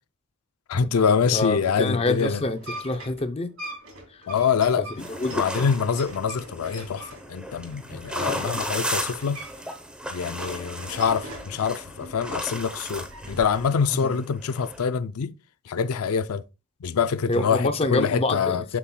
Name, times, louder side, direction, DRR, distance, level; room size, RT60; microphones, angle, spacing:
voice 1, 0.7-2.4 4.3-4.9 5.3-9.4 10.1-15.3 15.7-16.4 16.8-18.8, left 6 dB, 80° left, 0.4 m, -25 dB
voice 2, 1.3-3.5 4.1-4.3 5.0-5.7 13.9-14.2 17.3-18.8, left 2 dB, 25° left, 0.6 m, -27 dB
sound 1, 2.4-9.8 10.1-11.6 12.0-13.8, right 1 dB, 75° right, 2.8 m, -42 dB
sound 2, 5.0-14.9, equal, 5° right, 0.8 m, -35 dB
7.2 x 7.0 x 2.2 m
head